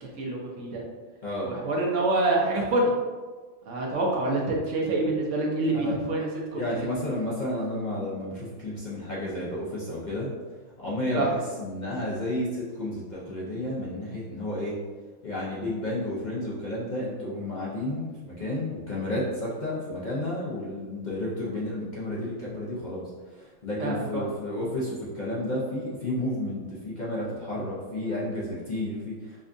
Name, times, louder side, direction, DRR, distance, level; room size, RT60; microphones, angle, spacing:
voice 1, 0.0-0.8 1.4-2.9 3.7-6.6 11.1-11.3 23.8-24.2, right 2 dB, 70° right, -2 dB, 1.0 m, -26 dB
voice 2, 6.5-10.3 10.8-14.8 15.2-29.4, left 1 dB, 45° left, -7 dB, 0.7 m, -31 dB
5.1 x 2.4 x 2.5 m, 1.4 s
omnidirectional pair, 1.4 m